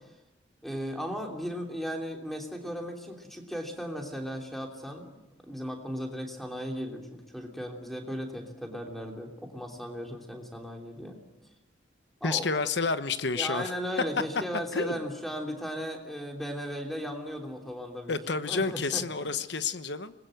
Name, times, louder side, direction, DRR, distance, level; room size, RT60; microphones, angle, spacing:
voice 1, 0.6-5.1 5.4-11.2 12.2-12.5 13.3-18.2 18.5-19.0, equal, ahead, 2 dB, 3.1 m, -36 dB
voice 2, 12.2-13.7 14.7-15.0 18.1-20.1, left 4 dB, 60° left, 11 dB, 1.1 m, -29 dB
26.0 x 20.5 x 7.9 m, 1.1 s
head